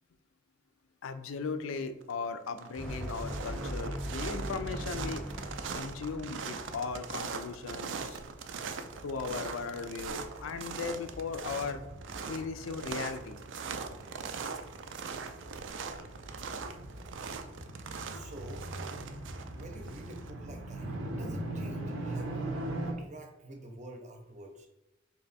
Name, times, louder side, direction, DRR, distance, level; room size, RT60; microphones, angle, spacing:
voice 1, 1.0-5.2 5.7-8.2 9.0-11.8 12.3-13.4, left 5 dB, 80° left, 10 dB, 0.4 m, -37 dB
sound 1, 1.8-2.1 2.4-20.3, right 5 dB, 65° right, 0.4 m, -41 dB
sound 2, 2.8-7.4, equal, 5° left, 0.5 m, -40 dB
sound 3, 3.8-22.9, right 1 dB, 85° right, 0.8 m, -43 dB
voice 2, 18.1-18.7 19.5-24.7, right 1 dB, 35° right, 3 dB, 0.7 m, -48 dB
3.4 x 2.9 x 4.1 m, 0.93 s
head